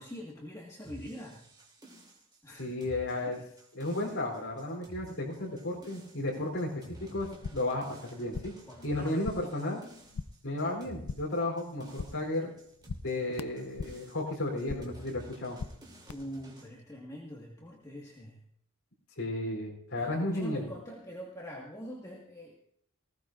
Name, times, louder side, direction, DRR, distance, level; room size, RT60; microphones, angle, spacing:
voice 1, 0.0-1.4 2.4-2.7 3.3-3.4 6.4-6.5 8.7-9.2 16.1-18.4 20.0-22.6, equal, 15° left, -3 dB, 1.8 m, -44 dB
sound 1, 0.8-16.7, right 1 dB, 20° right, 3.1 m, -52 dB
voice 2, 2.6-3.4 3.7-6.7 7.0-8.5 8.8-9.8 10.4-12.5 13.0-15.6 19.2-20.7, left 1 dB, 60° left, -3 dB, 3.8 m, -33 dB
sound 2, 7.2-7.8 8.1-8.7 9.0-9.6 9.9-10.5 10.8-11.4 11.7-12.3 12.6-14.1 14.4-15.0 15.3-16.1, left 4 dB, 80° left, 0.5 m, -42 dB
19.5 x 17.0 x 2.6 m, 0.68 s
head